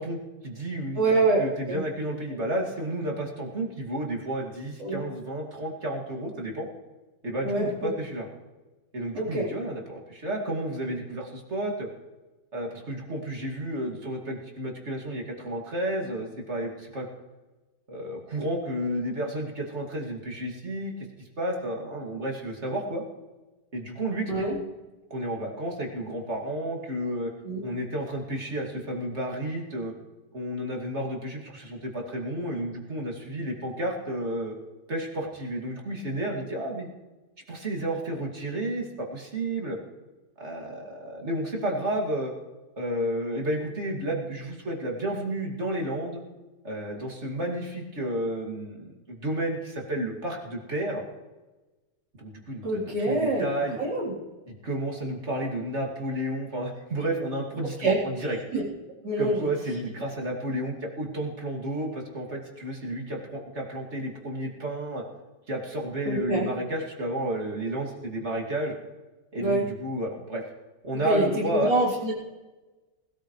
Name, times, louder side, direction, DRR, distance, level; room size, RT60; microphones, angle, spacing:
voice 1, 0.0-1.1 1.4-6.7 7.2-8.3 8.9-11.9 12.5-17.1 17.9-20.9 21.4-23.0 23.7-24.5 25.1-27.3 27.6-29.9 30.3-34.5 34.9-36.9 37.5-39.8 40.4-42.3 42.8-46.2 46.6-51.0 52.2-53.8 54.5-58.4 59.2-65.0 65.5-68.7 69.3-70.4 70.8-71.7, right 1 dB, 40° right, 0 dB, 2.8 m, -31 dB
voice 2, 1.0-1.4 1.7-1.8 4.8-5.0 7.4-7.9 9.1-9.5 24.3-24.6 27.4-27.6 52.6-53.5 53.8-54.2 57.8-58.0 58.5-58.7 59.0-59.5 66.1-66.5 69.4-69.7 71.0-72.1, right 2 dB, 90° right, -4 dB, 4.5 m, -25 dB
20.0 x 13.5 x 3.3 m, 1.2 s
omnidirectional pair, 1.9 m